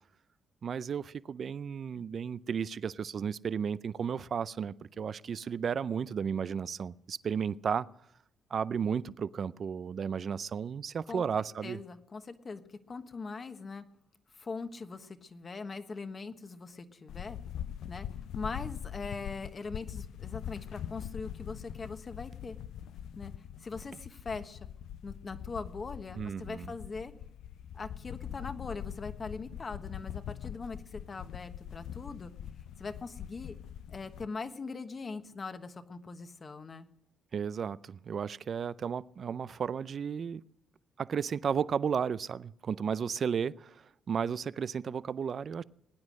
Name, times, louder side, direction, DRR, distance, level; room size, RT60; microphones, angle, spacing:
voice 1, 0.6-7.9 8.5-11.8 26.2-26.7 37.3-40.4 41.0-45.6, right 7 dB, 50° right, 18 dB, 0.5 m, -33 dB
voice 2, 11.6-13.8 14.3-17.4 17.9-18.1 18.3-22.6 23.1-23.3 23.6-24.7 25.0-27.1 27.7-32.3 32.8-33.6 33.9-36.9, left 4 dB, 35° left, 9 dB, 1.2 m, -41 dB
sound 1, 17.1-34.3, left 10 dB, 75° left, 0.5 m, -43 dB
20.5 x 9.6 x 6.4 m, 0.79 s
cardioid pair, 90°, 0 cm